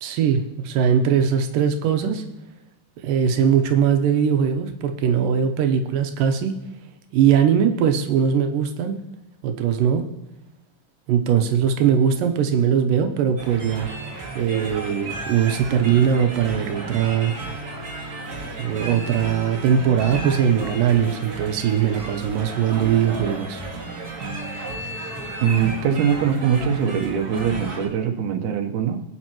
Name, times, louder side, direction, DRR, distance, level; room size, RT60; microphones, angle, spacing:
voice 1, 0.0-2.2 3.0-6.6 7.1-9.0 9.4-10.0 11.1-13.9 14.4-17.3 18.6-23.6, right 8 dB, 85° right, 6 dB, 2.5 m, -20 dB
sound 1, 13.4-27.9, right 2 dB, 35° right, 1.7 m, -33 dB
voice 2, 25.4-29.0, right 7 dB, 70° right, 3 dB, 2.3 m, -22 dB
20.0 x 8.6 x 3.0 m, 0.91 s
omnidirectional pair, 3.9 m